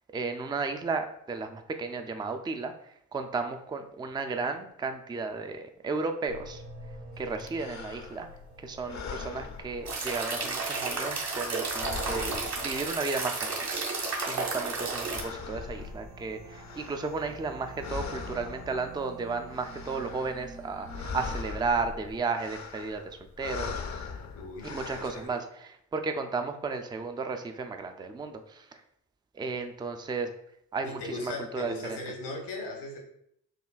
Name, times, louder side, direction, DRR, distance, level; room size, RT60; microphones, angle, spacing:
voice 1, 0.1-6.6 7.2-8.3 8.6-13.5 14.0-24.0 24.7-28.8 29.3-30.3 30.7-32.0, right 4 dB, 10° right, 6 dB, 0.4 m, -34 dB
sound 1, 6.3-21.4, right 2 dB, 75° right, 1.2 m, -49 dB
sound 2, 7.4-8.4 8.8-10.3 10.6-13.3 13.5-17.5 17.8-19.0 19.4-20.5 20.7-25.3, left 5 dB, 40° left, 0.6 m, -41 dB
sound 3, 9.9-15.2, right 3 dB, 55° right, 1.4 m, -32 dB
voice 2, 24.4-24.7 25.0-25.4 30.8-33.0, left 2 dB, 70° left, 1 dB, 1.1 m, -38 dB
6.5 x 2.2 x 2.3 m, 0.71 s
hypercardioid pair, 40°, 43 cm